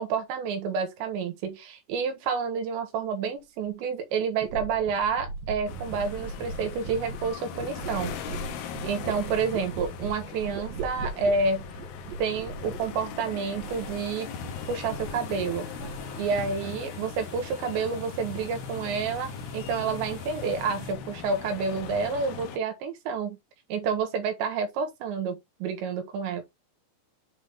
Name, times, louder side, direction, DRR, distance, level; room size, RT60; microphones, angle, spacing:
voice 1, 0.0-8.1 8.8-11.7 12.2-14.3 14.7-15.7 16.2-23.4 23.7-26.4, right 5 dB, 90° right, 3.7 m, -29 dB
sound 1, 3.7-3.8 4.4-14.1 14.4-15.2 15.5-16.4 16.6-17.2, right 4 dB, 60° right, 2.8 m, -39 dB
sound 2, 5.7-22.6, left 7 dB, 75° left, 2.4 m, -40 dB
sound 3, 13.6-20.9, left 5 dB, 55° left, 3.2 m, -46 dB
7.8 x 3.7 x 3.9 m
omnidirectional pair, 5.1 m